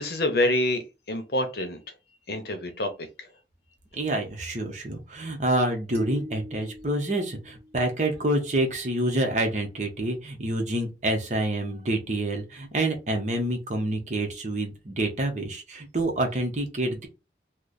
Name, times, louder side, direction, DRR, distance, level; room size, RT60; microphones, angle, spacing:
voice 1, 0.0-1.8 2.3-2.9 3.2-3.3, left 1 dB, 60° left, 0.7 m, -26 dB
voice 2, 3.9-17.1, right 1 dB, 40° right, 0.9 m, -27 dB
sound 1, 5.9-8.4, left 1 dB, 15° right, 1.3 m, -42 dB
3.2 x 2.1 x 3.8 m
head